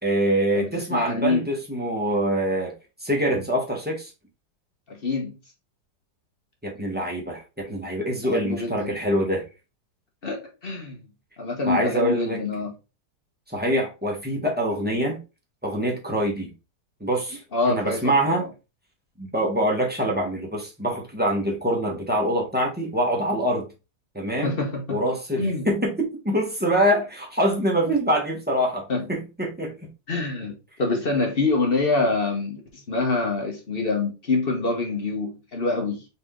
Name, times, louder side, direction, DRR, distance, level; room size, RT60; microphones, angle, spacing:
voice 1, 0.0-2.7 3.0-4.1 6.6-9.5 11.6-12.4 13.5-15.2 15.6-16.5 17.0-18.4 19.2-23.7 24.1-24.5 24.9-29.7, right 1 dB, 5° right, 0.9 m, -24 dB
voice 2, 0.5-1.5 4.9-5.4 8.3-9.0 10.2-11.0 11.4-12.7 17.5-18.5 24.4-25.0 25.4-25.7 28.9-29.1 30.1-36.1, left 3 dB, 40° left, 1.0 m, -26 dB
4.1 x 3.3 x 3.7 m
omnidirectional pair, 1.9 m